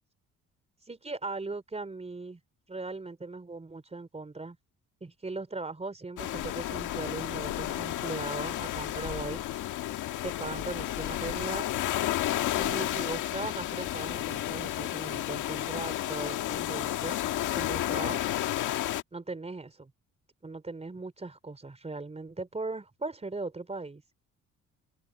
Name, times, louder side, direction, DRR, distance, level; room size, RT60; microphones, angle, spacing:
voice 1, 0.9-2.4 2.7-4.6 5.0-9.4 10.2-11.7 12.5-17.2 17.6-18.2 19.1-19.9 20.4-24.0, right 3 dB, 20° right, 3.5 m, -38 dB
sound 1, 6.2-19.0, left 13 dB, 85° left, 1.8 m, -32 dB
cardioid pair, 90°, 30 cm